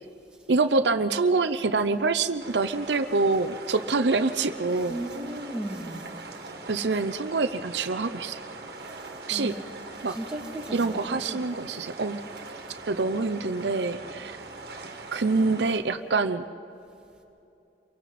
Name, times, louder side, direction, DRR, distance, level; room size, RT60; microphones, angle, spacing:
voice 1, 0.5-5.0 6.7-8.4 9.3-9.6 10.0-10.2 10.7-12.2 12.9-14.3 15.1-16.4, right 3 dB, 75° right, 9 dB, 0.7 m, -25 dB
sound 1, 2.4-15.8, right 3 dB, 60° right, 2.0 m, -42 dB
voice 2, 4.8-6.1 9.0-9.7 10.1-11.6, right 1 dB, 5° right, -2 dB, 2.6 m, -36 dB
30.0 x 23.5 x 4.3 m, 2.8 s
head